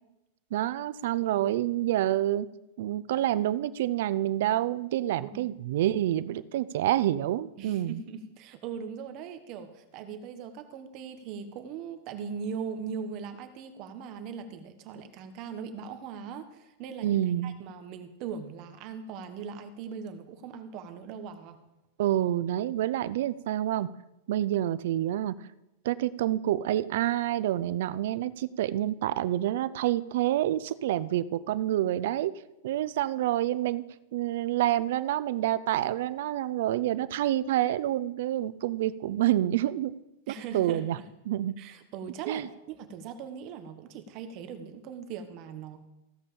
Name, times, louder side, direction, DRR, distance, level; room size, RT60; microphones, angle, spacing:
voice 1, 0.5-2.5 2.8-8.0 17.0-17.5 22.0-23.9 24.3-25.3 25.8-32.3 32.6-33.8 34.1-40.0 40.3-41.0 41.3-41.5 42.3-42.5, right 13 dB, 65° right, 16 dB, 0.5 m, -28 dB
voice 2, 5.2-5.5 7.6-21.6 40.3-40.8 41.6-45.9, right 6 dB, 40° right, 9 dB, 1.3 m, -40 dB
15.5 x 5.5 x 7.0 m, 0.93 s
supercardioid pair, 155°, 0 cm